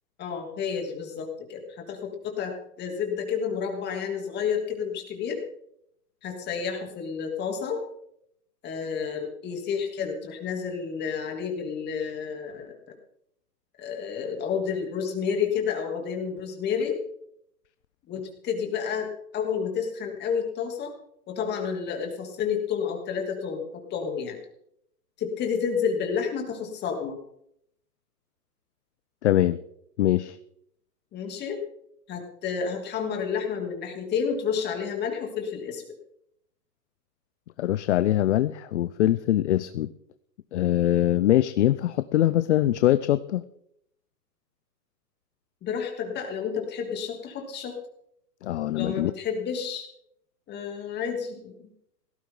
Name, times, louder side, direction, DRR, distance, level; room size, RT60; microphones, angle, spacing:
voice 1, 0.2-5.4 6.2-7.8 8.6-12.7 13.8-17.0 18.1-20.9 21.3-24.4 25.2-27.2 31.1-31.6 32.1-35.8 45.6-47.7 48.7-49.9 50.5-51.7, left 6 dB, 20° left, 3 dB, 3.0 m, -30 dB
voice 2, 29.2-29.6 30.0-30.4 37.6-39.9 40.5-43.4 48.4-49.1, left 13 dB, 45° left, 14 dB, 0.6 m, -23 dB
17.5 x 15.0 x 3.9 m, 0.73 s
hypercardioid pair, 140°, 50 cm